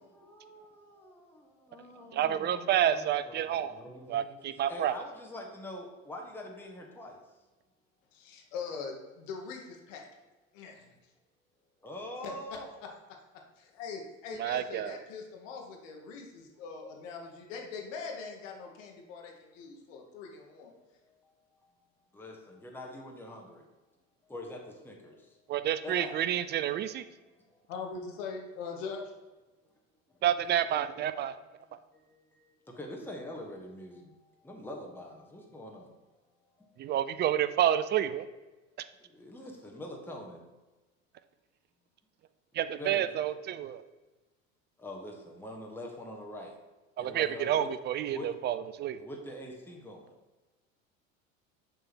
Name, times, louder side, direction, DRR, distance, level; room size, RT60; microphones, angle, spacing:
voice 1, 0.0-4.3 4.7-7.2 11.8-12.8 20.7-21.3 21.6-21.7 22.1-23.6 24.3-25.4 25.8-26.2 27.4-27.6 30.1-30.2 31.9-35.9 36.6-36.9 39.0-40.5 42.8-43.2 44.8-46.5 47.0-47.7 48.1-48.3 49.0-50.1, left 1 dB, 5° left, 0 dB, 1.3 m, -44 dB
voice 2, 2.1-3.7 4.1-4.9 14.3-15.0 25.5-27.0 30.2-31.4 36.8-38.3 42.5-43.8 47.0-49.0, right 10 dB, 30° right, 13 dB, 0.4 m, -29 dB
voice 3, 8.1-10.1 10.5-10.9 12.2-13.2 13.6-20.7 27.7-29.1, left 5 dB, 70° left, 1 dB, 1.4 m, -42 dB
6.7 x 3.6 x 6.1 m, 1.2 s
hypercardioid pair, 75°, 40 cm